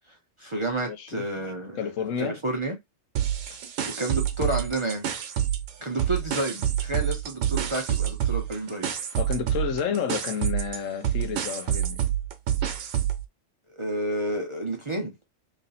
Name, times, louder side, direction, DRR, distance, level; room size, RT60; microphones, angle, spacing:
voice 1, 0.1-1.9 2.2-2.8 3.9-5.1 5.8-8.9 13.7-15.2, right 1 dB, 30° right, 0.6 m, -30 dB
voice 2, 0.9-1.4 1.8-2.4 3.5-3.6 9.2-12.1, left 7 dB, 85° left, 1.1 m, -31 dB
sound 1, 3.2-5.7 6.0-13.2, right 10 dB, 85° right, 1.1 m, -27 dB
3.1 x 2.6 x 4.0 m
omnidirectional pair, 1.3 m